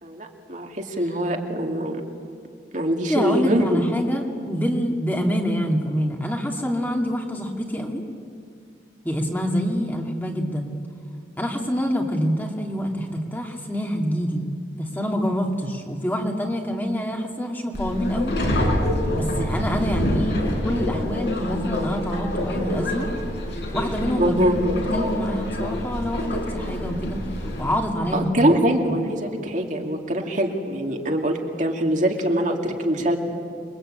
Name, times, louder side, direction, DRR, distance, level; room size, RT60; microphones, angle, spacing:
voice 1, 0.0-2.0 2.7-3.8 24.2-24.6 28.1-33.2, right 1 dB, 45° right, 2 dB, 2.6 m, -23 dB
voice 2, 3.1-8.0 9.0-10.7 11.4-14.4 14.8-18.6 19.1-23.1 23.7-24.4 24.7-27.2 27.6-28.5 28.8-29.0, equal, 10° left, 1 dB, 2.4 m, -26 dB
Subway metro underground, 17.7-27.8, left 1 dB, 65° left, 5.8 m, -26 dB
28.5 x 23.0 x 8.9 m, 2.3 s
head